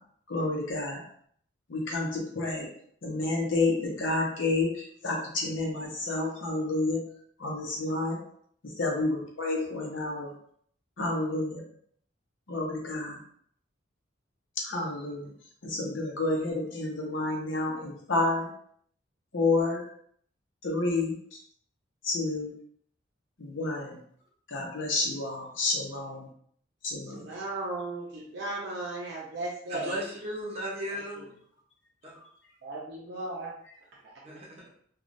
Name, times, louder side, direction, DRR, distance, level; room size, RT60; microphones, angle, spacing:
voice 1, 0.3-1.0 1.7-2.7 3.0-7.0 7.4-8.2 8.6-10.3 11.0-11.6 12.5-13.2 14.6-15.3 15.6-18.5 19.3-19.8 20.6-21.1 22.0-22.5 23.4-24.0 24.5-26.3 26.8-27.2, left 2 dB, 70° left, -1 dB, 0.7 m, -29 dB
voice 2, 27.0-30.0 30.9-31.0 32.6-33.5 34.0-34.1, right 2 dB, 55° right, -5 dB, 0.5 m, -36 dB
voice 3, 29.7-31.3 32.0-32.2 34.2-34.7, equal, 30° right, -4 dB, 0.8 m, -36 dB
3.1 x 2.3 x 2.5 m, 0.64 s
head